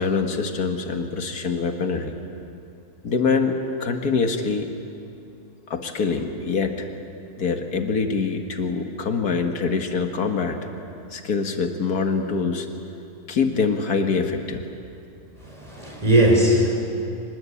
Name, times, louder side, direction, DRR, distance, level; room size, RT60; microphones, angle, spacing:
voice 1, 0.0-2.1 3.0-4.7 5.7-6.9 7.4-10.6 11.1-12.7 13.3-14.6, left 5 dB, 75° left, 5 dB, 2.0 m, -24 dB
voice 2, 15.4-16.7, right 1 dB, 25° right, -2 dB, 5.5 m, -19 dB
25.0 x 21.0 x 8.4 m, 2.7 s
omnidirectional pair, 1.6 m